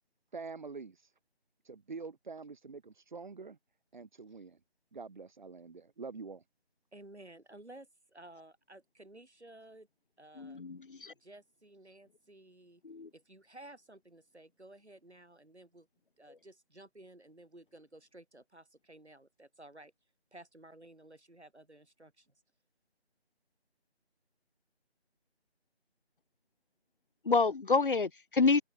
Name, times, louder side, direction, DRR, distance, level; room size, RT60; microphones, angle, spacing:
voice 1, 0.3-1.0 1.7-3.6 3.9-4.6 4.9-6.4, right 4 dB, 45° right, 3.7 m, -45 dB
voice 2, 6.9-9.9 10.2-10.6 11.2-12.8 13.1-15.9 16.2-19.9 20.3-22.3, right 1 dB, 85° right, 6.9 m, -54 dB
voice 3, 10.4-11.1 12.8-13.1 27.3-28.6, left 4 dB, 55° left, 0.7 m, -28 dB
figure-of-eight pair, 160°, 33 cm